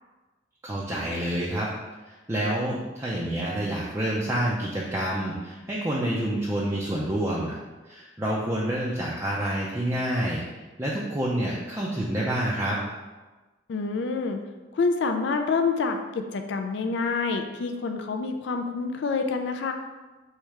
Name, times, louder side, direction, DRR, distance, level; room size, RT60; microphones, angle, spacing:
voice 1, 0.6-1.7 2.1-7.6 7.9-10.4 10.8-12.8, right 1 dB, 15° right, -5 dB, 0.4 m, -28 dB
voice 2, 13.7-14.4 14.7-19.7, left 4 dB, 65° left, 6 dB, 0.4 m, -27 dB
3.2 x 3.1 x 4.7 m, 1.2 s
head